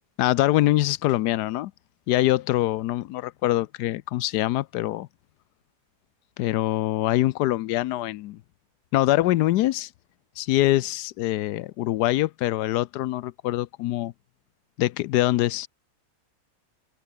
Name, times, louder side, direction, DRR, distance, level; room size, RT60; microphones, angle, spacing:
voice 1, 0.2-1.7 2.1-5.1 6.4-8.4 8.9-9.9 10.4-14.1 14.8-15.7, left 16 dB, 85° left, 1.2 m, -24 dB
open air
omnidirectional pair, 1.7 m